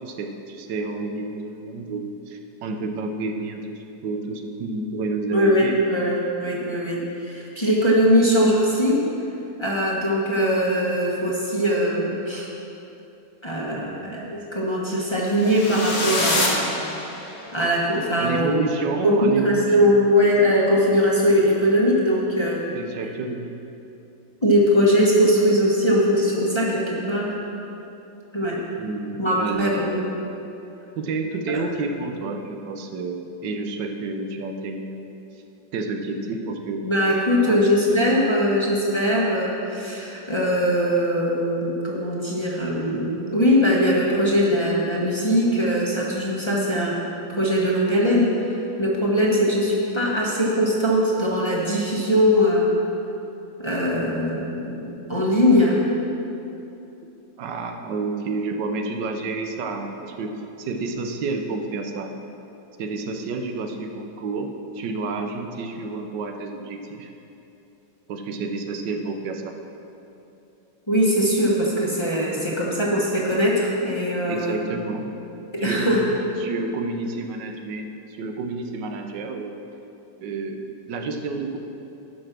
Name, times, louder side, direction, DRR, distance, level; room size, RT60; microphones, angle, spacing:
voice 1, 0.0-5.8 18.2-20.1 22.7-23.5 28.8-30.1 30.9-35.0 35.7-36.8 37.4-37.6 57.4-60.3 60.6-62.1 62.8-67.1 68.1-69.5 74.3-75.2 75.6-79.5 80.2-81.6, right 3 dB, 90° right, 5 dB, 1.4 m, -30 dB
voice 2, 5.3-9.0 9.6-12.5 13.4-16.7 17.5-18.6 19.0-22.7 24.4-27.3 28.3-28.6 29.2-30.1 31.5-31.6 36.8-47.0 47.4-48.3 48.8-52.7 53.6-55.8 70.9-74.6 75.5-76.0, equal, 20° left, -5 dB, 1.2 m, -21 dB
sound 1, 15.3-17.5, left 2 dB, 60° left, 1.8 m, -26 dB
11.5 x 5.4 x 6.0 m, 2.9 s
omnidirectional pair, 1.8 m